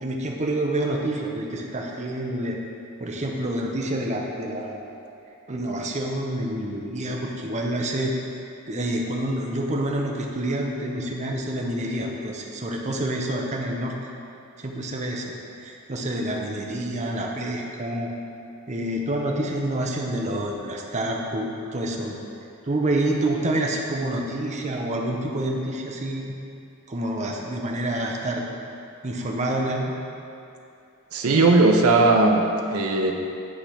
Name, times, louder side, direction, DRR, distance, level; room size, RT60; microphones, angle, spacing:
voice 1, 0.0-2.6 3.0-4.9 5.5-8.1 8.7-14.1 14.6-15.3 15.6-18.1 18.7-22.2 22.6-26.3 26.9-28.5 29.0-29.9, right 1 dB, 35° right, -1 dB, 0.7 m, -28 dB
voice 2, 31.1-33.1, right 2 dB, 80° right, 2 dB, 0.6 m, -18 dB
8.5 x 3.3 x 5.8 m, 2.7 s
head